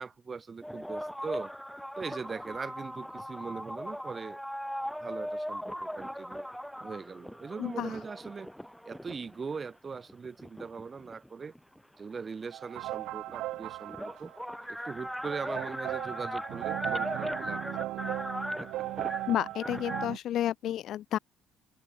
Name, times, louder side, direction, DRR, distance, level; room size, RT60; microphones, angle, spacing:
voice 1, 0.0-1.5 2.0-4.4 5.0-6.5 6.8-8.5 8.9-11.5 12.0-14.3 14.7-18.2 18.6-18.8, right 5 dB, 35° right, 2.1 m, -40 dB
sound 1, 0.6-9.4 10.1-11.8 13.0-13.1 13.3-20.1, equal, ahead, 1.9 m, -39 dB
voice 2, 7.6-7.9 19.3-21.2, left 12 dB, 65° left, 0.6 m, -31 dB
sound 2, 12.5-14.5 15.0-20.2, right 16 dB, 80° right, 1.2 m, -37 dB
open air
cardioid pair, 85°, 0 cm